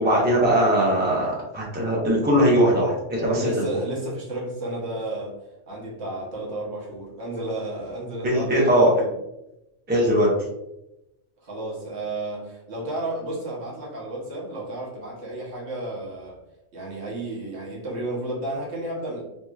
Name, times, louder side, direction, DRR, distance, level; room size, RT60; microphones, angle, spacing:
voice 1, 0.0-3.6 8.2-8.9 9.9-10.3, equal, 10° right, -4 dB, 0.6 m, -20 dB
voice 2, 3.2-5.4 5.7-9.1 11.4-16.4 16.7-19.2, right 1 dB, 65° right, -4 dB, 1.2 m, -32 dB
3.0 x 2.8 x 2.3 m, 0.88 s
omnidirectional pair, 1.2 m